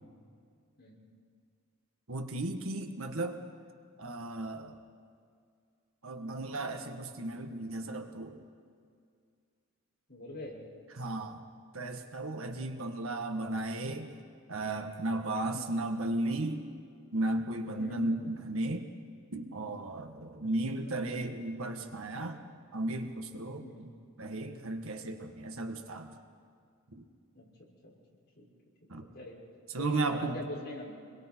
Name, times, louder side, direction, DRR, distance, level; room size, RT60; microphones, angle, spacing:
voice 1, 2.1-3.4 4.0-4.8 6.0-8.4 11.0-11.4 11.7-14.1 14.5-16.7 17.1-18.9 19.3-22.4 22.7-23.9 24.2-26.2 26.9-27.0 28.9-29.0 29.7-30.4, right 2 dB, 75° right, 5 dB, 1.6 m, -35 dB
voice 2, 10.1-10.6 15.5-15.7 17.8-18.1 20.4-20.5 20.7-21.0 23.6-23.9 27.3-27.9 28.4-28.5 29.1-29.4 29.8-30.9, left 1 dB, 50° left, -5 dB, 6.1 m, -42 dB
27.0 x 22.0 x 4.6 m, 2.2 s
head